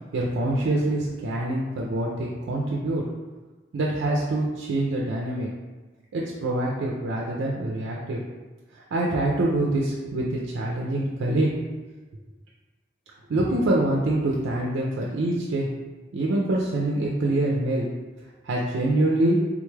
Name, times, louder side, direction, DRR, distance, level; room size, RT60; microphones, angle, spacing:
voice 1, 0.1-3.0 3.7-5.5 6.1-8.2 8.7-11.5 13.3-15.7 16.1-17.9 18.4-19.4, right 1 dB, 85° right, -3 dB, 0.4 m, -25 dB
3.6 x 2.3 x 3.1 m, 1.2 s
head